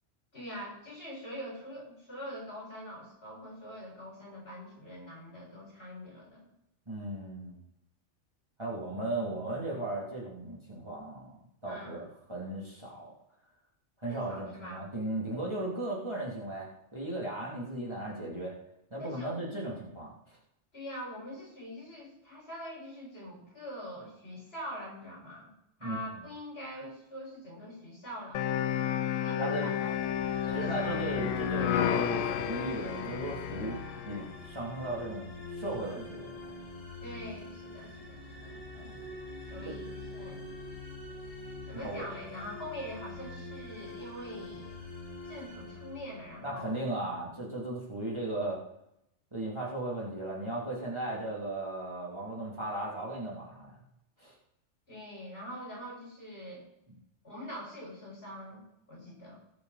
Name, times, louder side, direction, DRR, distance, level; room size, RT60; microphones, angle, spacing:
voice 1, 0.3-6.5 11.6-12.0 14.1-14.8 19.0-19.6 20.7-25.5 25.8-28.5 29.2-30.0 30.5-31.1 37.0-38.6 39.4-40.5 41.7-44.8 45.3-46.8 54.9-56.6 57.2-58.6 58.9-59.4, equal, 55° left, -3 dB, 5.6 m, -43 dB
voice 2, 6.9-7.6 8.6-13.1 14.0-18.5 18.9-20.4 25.8-26.0 29.4-29.7 30.5-36.7 38.7-39.0 39.6-39.7 41.8-42.1 46.4-48.6 49.3-53.8 54.2-54.3, right 1 dB, 20° right, -5 dB, 2.8 m, -36 dB
sound 1, 28.3-34.3, left 10 dB, 90° left, 1.0 m, -31 dB
sound 2, 29.6-46.8, left 2 dB, 25° left, 3.3 m, -44 dB
18.5 x 6.7 x 4.1 m, 0.79 s
omnidirectional pair, 1.3 m